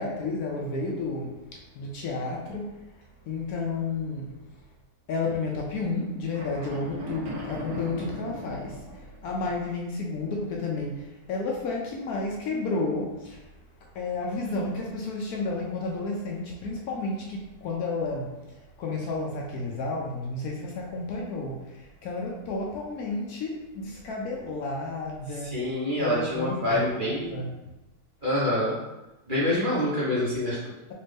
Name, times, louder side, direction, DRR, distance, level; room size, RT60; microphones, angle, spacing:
voice 1, 0.0-2.7 3.3-4.3 5.1-13.5 13.9-25.6 26.0-27.5, left 3 dB, 70° left, -1 dB, 1.0 m, -32 dB
sound 1, 6.3-9.6, left 1 dB, 70° right, 1.1 m, -39 dB
voice 2, 25.4-27.4 28.2-28.7 29.3-30.7, left 1 dB, 35° right, -8 dB, 0.9 m, -26 dB
4.2 x 2.5 x 3.3 m, 1.0 s
omnidirectional pair, 1.8 m